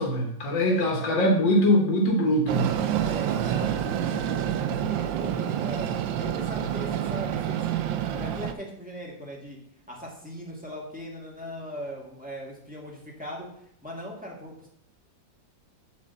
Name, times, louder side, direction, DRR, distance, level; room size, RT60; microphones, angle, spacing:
voice 1, 0.0-2.7, equal, 80° left, 1 dB, 1.9 m, -22 dB
voice 2, 0.6-1.6 3.0-5.9 6.2-9.6 9.9-13.5 13.8-14.7, equal, 5° right, -4 dB, 1.8 m, -40 dB
Train, 2.5-8.5, right 10 dB, 90° right, 1.3 m, -28 dB
7.3 x 4.2 x 6.6 m, 0.69 s
omnidirectional pair, 2.0 m